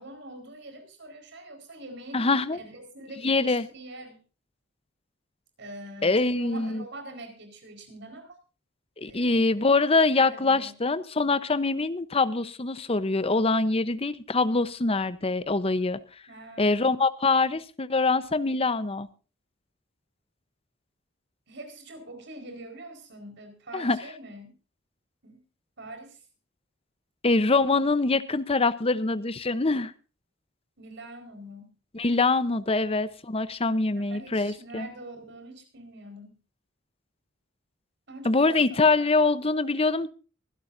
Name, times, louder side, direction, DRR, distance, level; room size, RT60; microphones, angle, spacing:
voice 1, 0.0-2.3 2.5-4.2 5.6-8.4 9.0-9.6 10.1-10.7 16.3-17.0 21.5-24.5 25.2-25.4 25.8-26.2 30.8-31.7 33.9-36.4 38.1-39.1, right 1 dB, 60° right, 5 dB, 4.5 m, -44 dB
voice 2, 2.1-2.6 3.2-3.6 6.0-6.8 9.0-16.0 16.6-19.1 23.7-24.0 27.2-29.9 31.9-34.9 38.2-40.1, left 3 dB, 30° left, 14 dB, 0.8 m, -24 dB
24.5 x 11.5 x 2.6 m, 0.35 s
head